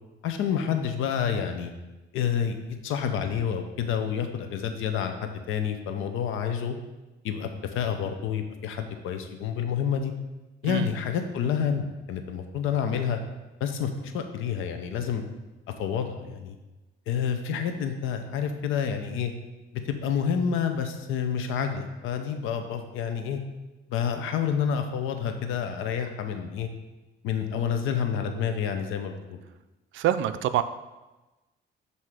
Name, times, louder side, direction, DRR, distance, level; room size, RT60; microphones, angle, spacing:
voice 1, 0.2-1.7 2.1-6.7 7.2-7.5 7.7-10.1 10.6-13.2 13.6-15.2 15.8-16.6 17.1-19.3 19.8-23.4 23.9-26.7 27.2-29.4, left 7 dB, 90° left, 6 dB, 0.6 m, -28 dB
voice 2, 29.9-30.6, right 12 dB, 75° right, 12 dB, 0.4 m, -25 dB
7.5 x 2.7 x 4.7 m, 1.1 s
cardioid pair, 90°, 20 cm